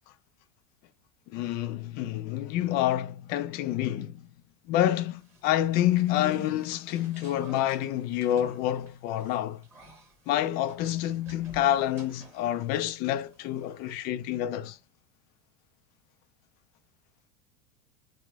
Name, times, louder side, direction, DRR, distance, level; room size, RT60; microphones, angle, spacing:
voice 1, 1.3-4.2 4.7-9.6 10.3-14.8, left 12 dB, 50° left, 0.4 m, -28 dB
sound 1, 5.2-12.8 13.1-14.0, right 2 dB, 10° right, 1.0 m, -50 dB
2.9 x 2.1 x 3.4 m
supercardioid pair, 135°, 20 cm